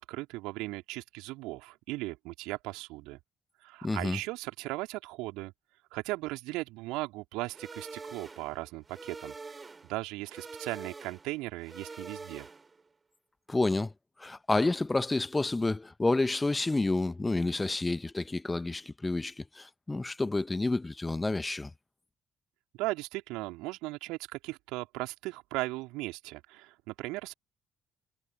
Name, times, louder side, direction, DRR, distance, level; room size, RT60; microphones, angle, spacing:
voice 1, 0.0-3.2 3.6-5.5 5.9-9.6 9.9-12.5 22.8-27.3, right 21 dB, 70° right, 3.3 m, -37 dB
voice 2, 3.8-4.2 13.5-13.9 14.2-21.7, left 2 dB, 20° left, 1.2 m, -29 dB
sound 1, 7.5-12.9, right 4 dB, 30° right, 3.8 m, -46 dB
figure-of-eight pair, 45°, 0 cm